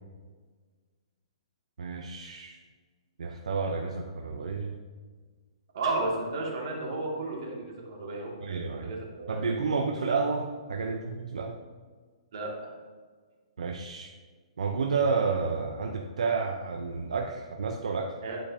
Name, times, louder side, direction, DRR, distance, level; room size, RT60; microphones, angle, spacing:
voice 1, 1.8-2.6 3.2-4.8 8.4-9.0 9.3-11.6 13.6-14.1 14.6-18.2, right 4 dB, 90° right, 2 dB, 0.7 m, -30 dB
voice 2, 5.7-9.4 12.3-12.7 18.2-18.4, right 2 dB, 55° right, -3 dB, 2.4 m, -33 dB
11.0 x 5.3 x 2.8 m, 1.5 s
hypercardioid pair, 160°, 3 cm